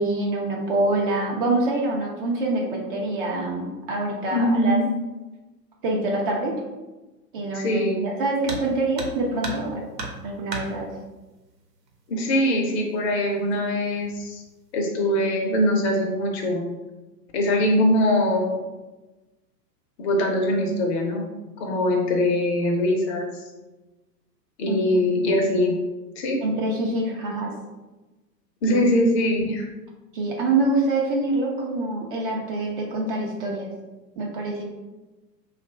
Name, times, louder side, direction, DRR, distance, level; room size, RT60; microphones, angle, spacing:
voice 1, 0.0-4.8 5.8-6.5 7.3-9.8 10.2-10.9 24.7-24.8 26.4-27.5 28.7-28.8 30.1-33.7 34.2-34.6, right 2 dB, 35° right, -1 dB, 0.6 m, -25 dB
voice 2, 4.3-4.9 7.5-8.1 12.1-14.4 14.7-16.6 17.3-18.6 20.0-21.3 21.6-23.3 24.6-25.7 26.2-26.4 28.6-29.7, left 1 dB, 40° left, 1 dB, 0.8 m, -22 dB
sound 1, 8.4-8.7 9.0-9.7 10.0-10.7 11.9-12.0 12.4-12.5 13.3-13.7 14.0-14.4, right 3 dB, 75° right, 0.9 m, -33 dB
2.8 x 2.5 x 4.2 m, 1.1 s
hypercardioid pair, 115°, 50 cm